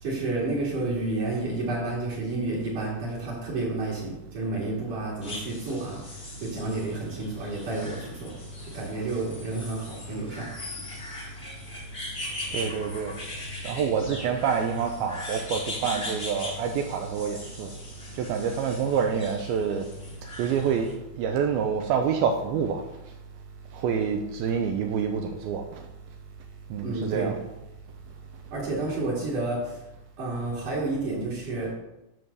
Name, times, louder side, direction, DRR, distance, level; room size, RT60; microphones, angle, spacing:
voice 1, 0.0-8.3 8.6-10.5 26.8-27.4 28.5-29.9 30.2-31.8, right 2 dB, 55° right, -7 dB, 3.4 m, -30 dB
sound 1, 5.2-20.9, left 2 dB, 50° left, 0.7 m, -39 dB
voice 2, 12.5-13.1 13.6-17.7 18.2-19.9 20.4-20.9 21.2-22.8 23.7-25.7 26.7-27.4, right 7 dB, 85° right, 4 dB, 2.2 m, -27 dB
10.5 x 3.7 x 6.7 m, 0.92 s
omnidirectional pair, 4.9 m